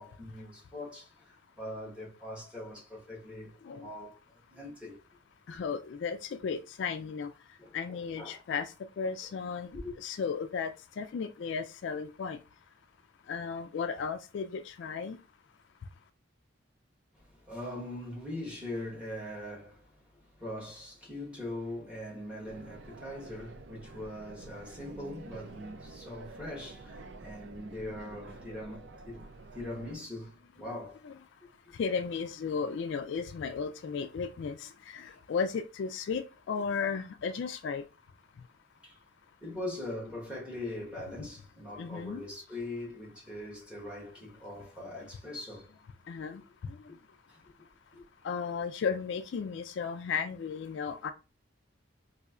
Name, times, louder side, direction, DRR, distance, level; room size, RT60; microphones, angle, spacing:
voice 1, 0.0-5.0 5.5-5.6 7.6-8.4 9.7-9.9 17.1-31.0 35.0-35.2 38.8-39.0 39.4-45.7 47.3-47.4 47.9-48.0, left 1 dB, 5° right, 1.2 m, -42 dB
voice 2, 5.5-6.2 6.4-7.3 7.7-8.7 9.0-9.7 10.0-10.7 11.0-12.4 13.3-15.2 30.6-30.7 31.0-31.1 31.8-34.5 34.9-37.8 41.8-42.2 46.1-46.4 48.2-51.1, left 5 dB, 60° left, 0.3 m, -34 dB
sound 1, 22.5-30.0, right 3 dB, 55° right, 0.4 m, -49 dB
4.2 x 2.6 x 2.4 m
head